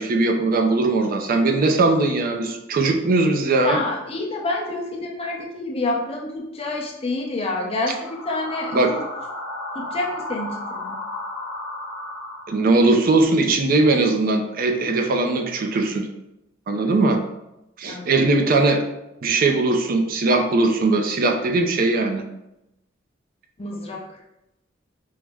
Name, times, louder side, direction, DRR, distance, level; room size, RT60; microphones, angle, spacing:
voice 1, 0.0-3.8 8.7-8.9 12.5-16.1 16.7-17.2 17.8-18.8 19.2-22.2, right 3 dB, 45° right, 4 dB, 0.4 m, -20 dB
voice 2, 3.6-9.0 9.7-11.0 16.7-17.0 17.8-18.1 23.6-24.2, left 2 dB, 30° left, -1 dB, 0.6 m, -28 dB
sound 1, 7.9-12.9, left 1 dB, 75° left, 0.8 m, -33 dB
4.7 x 2.0 x 3.3 m, 0.90 s
head